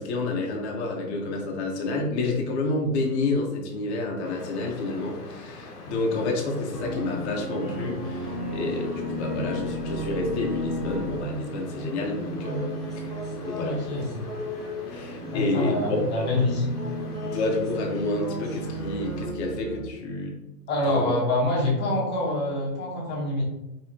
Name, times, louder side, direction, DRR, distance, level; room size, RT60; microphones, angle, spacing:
voice 1, 0.0-12.7 13.0-13.1 13.4-13.8 14.9-15.8 16.1-16.3 17.2-20.4 20.8-21.1, left 2 dB, 45° left, 1 dB, 1.0 m, -29 dB
sound 1, 4.2-19.3, left 3 dB, 65° left, 1.1 m, -44 dB
sound 2, 6.7-19.8, equal, ahead, 0.5 m, -34 dB
voice 2, 13.6-14.2 15.3-16.7 20.7-23.4, left 1 dB, 20° left, -3 dB, 1.2 m, -26 dB
4.7 x 3.2 x 2.9 m, 0.94 s
figure-of-eight pair, 105°, 49 cm